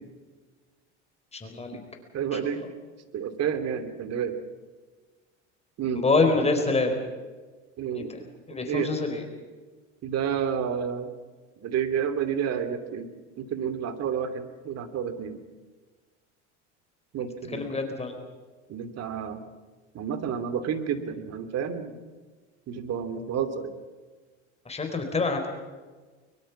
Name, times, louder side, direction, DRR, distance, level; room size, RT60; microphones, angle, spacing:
voice 1, 1.3-1.8 2.3-2.6 5.9-7.0 7.9-9.2 17.5-18.2 24.6-25.5, left 3 dB, 20° left, 4 dB, 4.4 m, -26 dB
voice 2, 2.1-2.6 3.1-4.4 5.8-6.0 7.8-8.1 8.6-8.9 10.0-11.1 11.6-13.1 13.4-15.4 17.1-17.6 18.7-19.4 19.9-22.0 22.7-23.8, right 8 dB, 45° right, 9 dB, 2.9 m, -30 dB
23.0 x 22.5 x 6.1 m, 1.4 s
hypercardioid pair, 90°, 35 cm